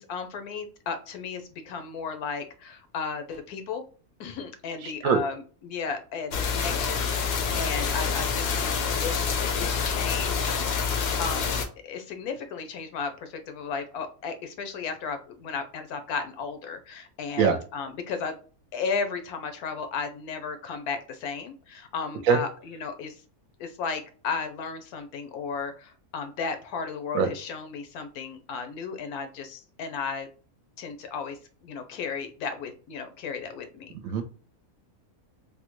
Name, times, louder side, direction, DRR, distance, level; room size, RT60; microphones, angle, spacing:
voice 1, 0.0-3.8 4.2-8.5 8.8-10.5 11.2-11.4 11.8-18.4 18.7-23.1 23.6-30.3 30.8-31.4 31.6-33.9, left 5 dB, 85° left, 7 dB, 1.1 m, -34 dB
voice 2, 5.0-5.2 17.4-17.6 22.3-22.4 27.1-27.3 34.0-34.2, right 6 dB, 70° right, 6 dB, 0.9 m, -21 dB
sound 1, 6.3-11.6, left 6 dB, 65° left, 0.6 m, -27 dB
3.5 x 2.1 x 2.9 m, 0.39 s
omnidirectional pair, 1.6 m